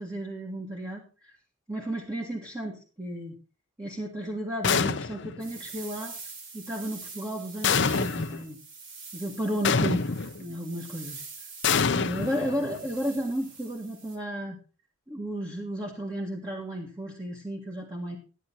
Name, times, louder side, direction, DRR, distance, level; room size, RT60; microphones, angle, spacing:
voice 1, 0.0-1.4 1.7-3.4 3.8-6.2 6.5-8.6 9.1-11.2 11.9-14.6 15.1-18.2, right 1 dB, 15° right, -1 dB, 1.9 m, -33 dB
sound 1, 4.6-5.4 7.6-8.4 9.6-10.4 11.6-12.9, left 5 dB, 60° left, 0.8 m, -26 dB
sound 2, 5.4-14.2, right 4 dB, 65° right, 3.5 m, -45 dB
13.0 x 9.7 x 4.3 m, 0.35 s
head